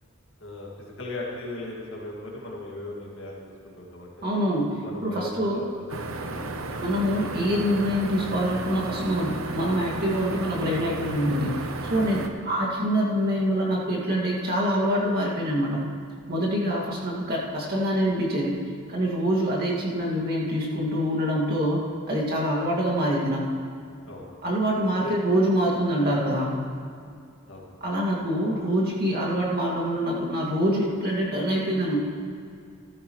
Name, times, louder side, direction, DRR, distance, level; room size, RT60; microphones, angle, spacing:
voice 1, 0.4-4.1 4.8-7.0 11.8-12.0 24.1-24.2 24.8-25.2 27.5-27.6, left 2 dB, 60° left, -3 dB, 2.2 m, -38 dB
voice 2, 4.2-5.6 6.8-15.9 16.3-18.5 18.9-21.8 22.1-23.4 24.4-26.6 27.8-32.0, equal, 45° right, -4 dB, 2.1 m, -25 dB
sound 1, 5.9-12.3, right 2 dB, 70° right, 0.9 m, -34 dB
14.5 x 13.0 x 3.1 m, 2.3 s
head